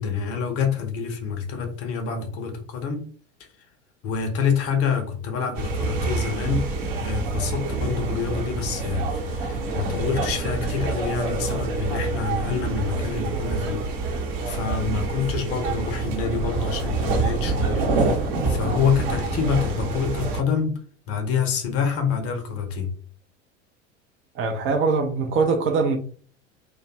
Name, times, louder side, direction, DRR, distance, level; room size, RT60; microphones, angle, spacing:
voice 1, 0.0-3.1 4.0-6.7 7.0-13.9 14.4-17.8 18.5-20.8 21.1-22.9, left 6 dB, 40° left, 0.7 m, -26 dB
sound 1, 5.5-20.4, right 3 dB, 50° right, 0.9 m, -27 dB
voice 2, 24.3-26.0, right 4 dB, 35° right, 0.5 m, -22 dB
2.5 x 2.2 x 2.8 m
figure-of-eight pair, 75°, 37 cm